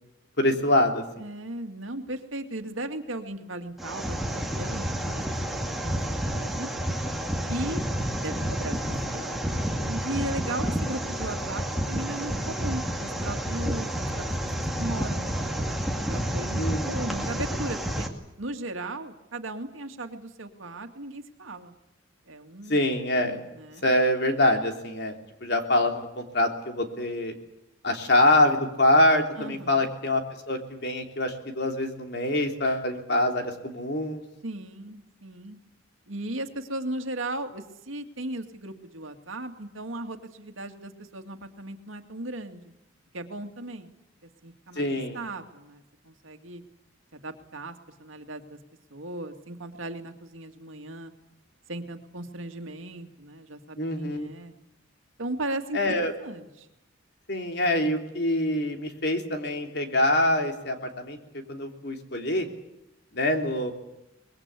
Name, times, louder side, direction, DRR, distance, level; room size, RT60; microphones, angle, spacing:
voice 1, 0.4-1.0 16.6-17.1 22.7-23.4 23.8-27.3 27.8-34.2 44.7-45.2 53.8-54.3 55.7-56.1 57.3-61.2 61.5-62.5 63.1-63.7, left 1 dB, 55° left, 4 dB, 3.2 m, -25 dB
voice 2, 1.2-6.0 6.3-6.7 7.5-7.9 8.2-14.5 14.8-18.1 18.4-21.7 22.3-22.8 23.5-23.9 29.4-29.9 34.4-35.6 36.1-42.7 43.1-43.9 44.2-46.6 47.1-47.7 48.0-48.6 48.9-51.1 51.7-54.5 55.2-56.7, right 1 dB, 80° right, 6 dB, 2.1 m, -37 dB
sound 1, 3.8-18.1, equal, ahead, 2.2 m, -30 dB
24.5 x 21.0 x 8.3 m, 0.87 s
head